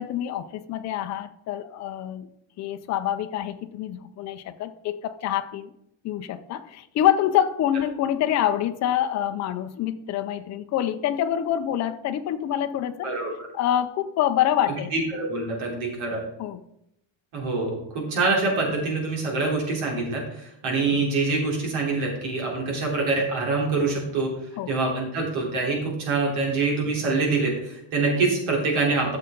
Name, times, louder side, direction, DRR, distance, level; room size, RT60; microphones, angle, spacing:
voice 1, 0.0-2.3 2.6-5.7 6.0-13.1 13.5-14.9 16.4-16.6 24.6-24.7, left 11 dB, 35° left, 7 dB, 0.5 m, -26 dB
voice 2, 14.9-16.2 17.3-24.3 24.7-29.2, right 3 dB, 75° right, -2 dB, 3.8 m, -25 dB
13.5 x 6.7 x 3.9 m, 0.80 s
cardioid pair, 180°, 48 cm